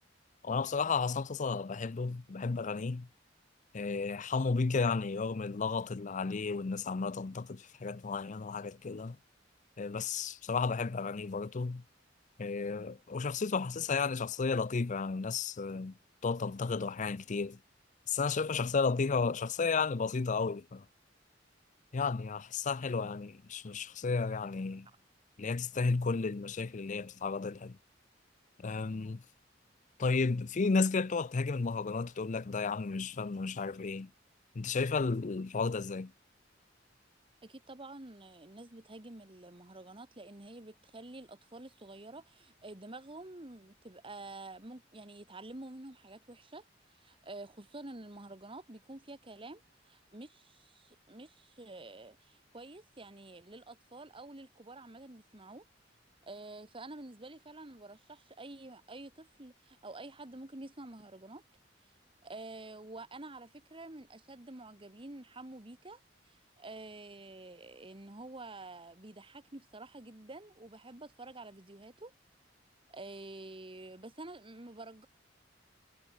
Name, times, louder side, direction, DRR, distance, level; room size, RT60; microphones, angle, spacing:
voice 1, 0.4-3.1 3.7-9.2 9.8-11.8 12.4-15.9 16.2-17.6 18.1-20.8 21.9-24.9 25.4-27.8 28.6-29.2 30.0-34.1 34.5-36.1, left 4 dB, 40° left, 0.5 m, -33 dB
voice 2, 37.4-46.6 47.0-49.6 49.9-55.7 56.2-61.4 62.2-72.1 72.9-75.1, right 2 dB, 30° right, 1.8 m, -48 dB
head